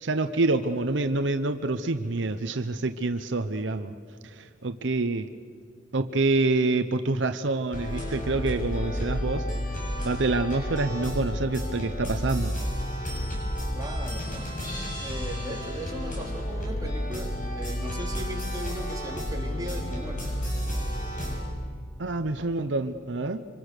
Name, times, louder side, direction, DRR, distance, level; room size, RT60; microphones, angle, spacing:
voice 1, 0.0-3.9 4.2-5.3 5.9-9.4 10.0-12.6 22.0-23.4, right 2 dB, 70° right, 9 dB, 0.8 m, -27 dB
sound 1, 7.7-21.4, equal, 45° left, 7.0 m, -31 dB
voice 2, 13.7-14.6 15.0-20.4, right 1 dB, 20° right, 0 dB, 2.8 m, -38 dB
26.5 x 25.0 x 6.7 m, 2.2 s
head